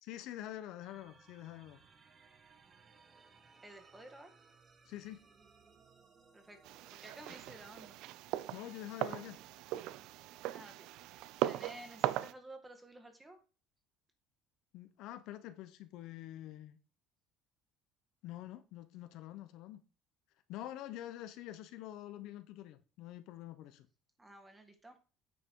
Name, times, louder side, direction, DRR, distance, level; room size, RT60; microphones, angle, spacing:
voice 1, 0.0-1.8 4.8-5.3 8.5-9.4 14.7-16.8 18.2-19.8 20.5-23.9, left 13 dB, 65° left, 0.9 m, -46 dB
sound 1, 0.8-7.7, right 4 dB, 25° right, 1.2 m, -63 dB
voice 2, 3.6-4.3 6.3-6.6 7.0-8.0 10.5-10.9 11.5-13.4 24.2-25.0, right 1 dB, 10° right, 1.6 m, -53 dB
sound 2, 6.6-12.3, right 14 dB, 65° right, 0.5 m, -39 dB
9.4 x 5.5 x 4.6 m
cardioid pair, 135°, 0 cm